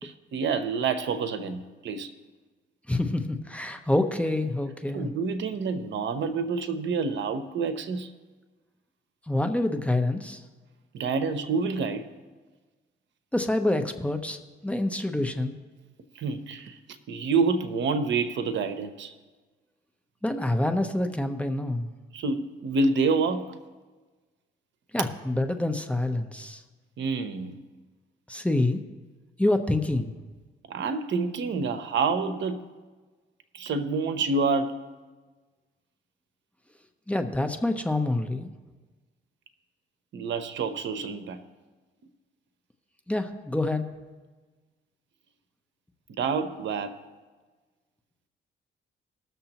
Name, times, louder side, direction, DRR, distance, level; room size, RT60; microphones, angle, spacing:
voice 1, 0.0-2.1 4.9-8.1 10.9-12.1 16.1-16.8 17.1-19.1 22.1-23.6 27.0-27.6 30.7-32.6 33.5-34.8 40.1-41.4 46.2-47.0, right 4 dB, 70° right, 10 dB, 0.9 m, -28 dB
voice 2, 2.9-5.1 9.3-10.4 13.3-14.4 14.6-15.5 20.2-21.9 24.9-26.6 28.3-28.8 29.4-30.1 37.1-38.5 43.1-43.9, left 1 dB, 5° left, 6 dB, 0.8 m, -27 dB
19.5 x 6.8 x 3.0 m, 1.3 s
cardioid pair, 90°, 20 cm